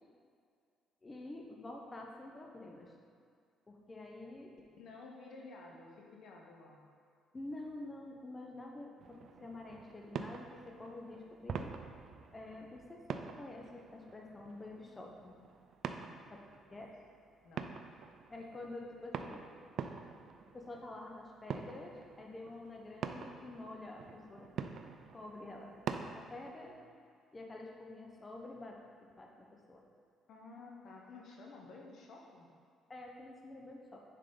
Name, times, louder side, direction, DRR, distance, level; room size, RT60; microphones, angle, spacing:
voice 1, 1.0-2.9 3.7-4.5 7.3-11.7 12.3-15.3 16.3-16.4 16.7-16.9 18.3-19.5 20.5-24.5 25.1-25.7 26.1-26.7 27.3-28.7 29.2-29.8 32.9-34.0, left 2 dB, 25° left, 0 dB, 0.8 m, -48 dB
voice 2, 4.8-6.8 16.0-16.3 16.7-16.8 17.4-17.7 25.4-25.8 30.3-32.5, left 3 dB, 65° left, -1 dB, 0.8 m, -53 dB
sound 1, 9.0-26.5, right 6 dB, 60° right, 0.3 m, -46 dB
6.6 x 3.8 x 3.8 m, 2.2 s
supercardioid pair, 70°, 0 cm